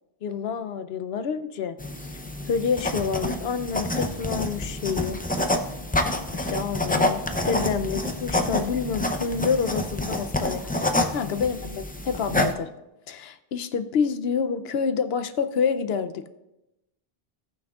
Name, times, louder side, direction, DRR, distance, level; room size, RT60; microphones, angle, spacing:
voice 1, 0.2-2.1 2.5-5.2 6.3-10.9 11.1-12.7 13.1-16.3, left 6 dB, 80° left, 11 dB, 0.9 m, -28 dB
sound 1, 1.8-12.5, left 1 dB, 15° left, 0.4 m, -28 dB
17.0 x 6.1 x 2.4 m, 0.92 s
omnidirectional pair, 1.0 m